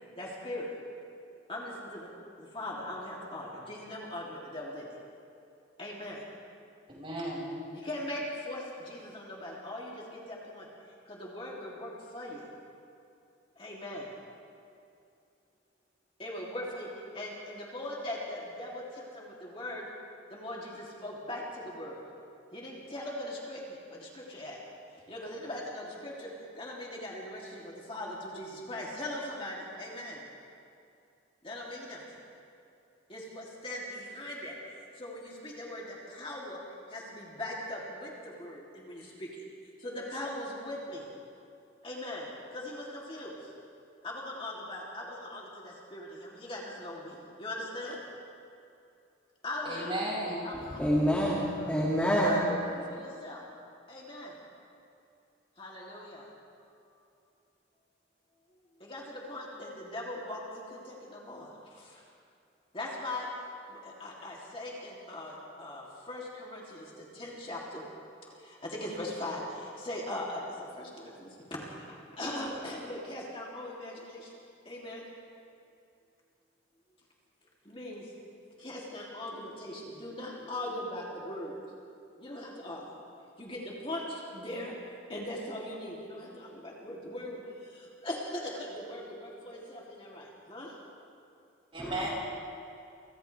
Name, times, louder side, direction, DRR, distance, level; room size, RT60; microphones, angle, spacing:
voice 1, 0.2-0.7 1.5-2.1 2.4-4.9 5.8-6.2 7.7-10.7 11.0-12.5 13.5-14.1 16.2-19.9 20.3-22.1 22.5-24.6 25.1-30.2 31.4-32.0 33.1-39.5 39.8-41.0 41.8-43.5 44.0-48.0 49.4-49.9 50.4-50.8 51.5-51.7 52.1-53.4 53.9-54.4 55.6-56.3 58.8-62.0 62.7-63.3 63.7-67.9 68.3-74.4 74.6-75.0 77.6-78.1 78.6-81.6 82.2-82.8 83.4-90.8, left 1 dB, 25° left, -4 dB, 3.1 m, -40 dB
voice 2, 6.9-7.5 49.6-50.5 91.7-92.1, right 1 dB, 30° right, -5 dB, 6.7 m, -34 dB
voice 3, 50.8-52.4 91.8-92.1, equal, 10° left, -7 dB, 2.4 m, -27 dB
30.0 x 26.5 x 3.5 m, 2.5 s
head